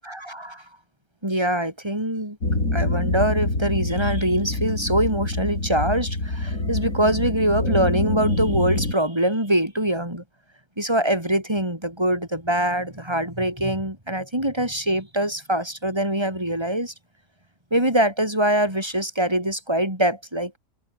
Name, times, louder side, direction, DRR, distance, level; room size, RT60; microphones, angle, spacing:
voice 1, 0.0-0.6 1.2-2.4 2.7-10.2 10.8-16.9 17.7-20.6, right 1 dB, 15° right, 6.9 m, -23 dB
sound 1, 2.4-8.9, left 2 dB, 50° left, 6.1 m, -25 dB
omnidirectional pair, 1.8 m